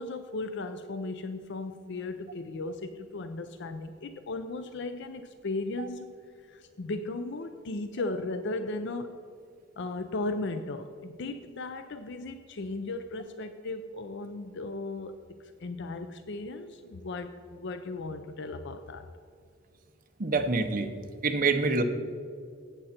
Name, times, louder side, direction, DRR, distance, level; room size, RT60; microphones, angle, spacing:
voice 1, 0.0-6.2 6.5-9.2 9.8-15.1 15.6-19.1, left 2 dB, 65° left, 9 dB, 0.6 m, -36 dB
voice 2, 20.2-20.9 21.2-21.8, right 3 dB, 45° right, 6 dB, 1.0 m, -26 dB
14.5 x 8.8 x 4.3 m, 2.2 s
head